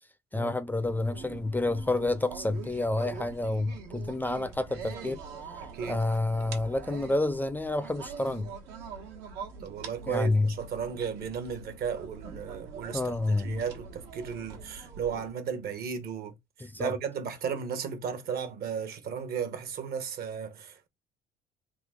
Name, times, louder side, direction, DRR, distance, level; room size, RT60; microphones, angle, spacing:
voice 1, 0.3-5.2 5.8-8.5 10.1-10.5 12.9-13.6 16.6-16.9, left 2 dB, 10° left, 0.4 m, -29 dB
sound 1, 0.8-15.3, right 5 dB, 90° right, 1.3 m, -44 dB
voice 2, 9.6-16.3 16.8-20.9, right 7 dB, 65° right, 1.1 m, -35 dB
3.7 x 2.8 x 3.6 m
cardioid pair, 110°, 17 cm